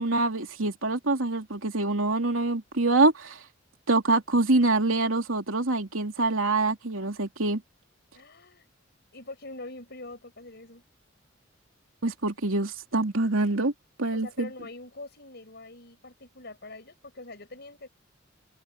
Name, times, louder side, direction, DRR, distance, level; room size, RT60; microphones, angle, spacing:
voice 1, 0.0-3.4 3.9-7.6 12.0-13.7 14.0-14.5, right 2 dB, 85° right, 2.9 m, -25 dB
voice 2, 8.1-8.7 9.1-10.8 14.1-17.9, left 2 dB, 55° left, 6.8 m, -44 dB
head